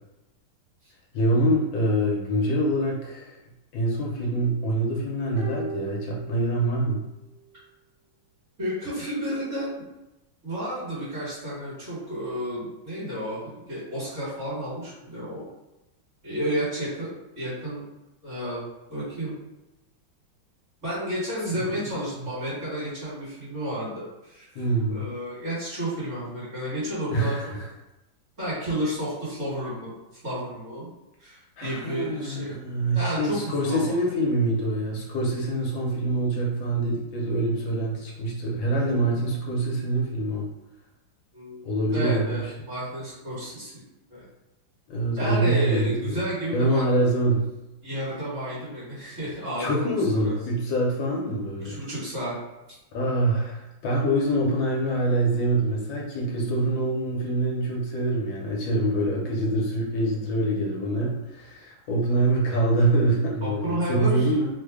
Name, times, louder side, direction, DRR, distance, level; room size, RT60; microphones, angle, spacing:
voice 1, 1.1-3.4 3.7-7.1 21.5-21.7 22.1-22.2 24.5-25.1 27.1-27.6 31.6-40.5 41.6-42.5 44.9-46.2 46.5-47.4 49.6-51.8 52.9-64.5, right 1 dB, 75° left, -2 dB, 1.3 m, -25 dB
sound 1, 5.4-7.0 7.3-7.4, right 3 dB, 70° right, 1.2 m, -39 dB
voice 2, 8.6-9.8 10.4-15.4 16.2-17.1 17.3-17.8 18.2-18.6 18.9-19.3 20.8-27.5 28.4-30.9 31.2-32.6 32.9-34.0 41.3-43.7 44.1-44.3 45.2-46.8 47.8-49.7 50.1-50.3 51.6-52.3 63.4-64.3, equal, 40° right, -9 dB, 1.6 m, -31 dB
3.2 x 2.1 x 3.4 m, 0.96 s
omnidirectional pair, 2.2 m